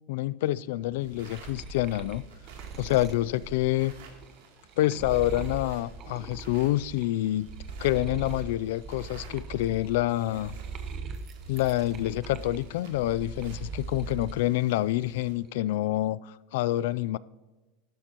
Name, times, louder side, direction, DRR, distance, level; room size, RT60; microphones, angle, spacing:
voice 1, 0.1-2.3 2.8-3.9 4.8-7.5 7.8-10.6 11.5-17.2, left 15 dB, 70° left, 0.3 m, -27 dB
sound 1, 0.8-7.1 7.4-14.4 14.8-15.5, right 4 dB, 30° right, 0.7 m, -41 dB
sound 2, 1.0-15.3, right 5 dB, 90° right, 2.8 m, -55 dB
15.5 x 12.0 x 2.9 m
supercardioid pair, 165°, 0 cm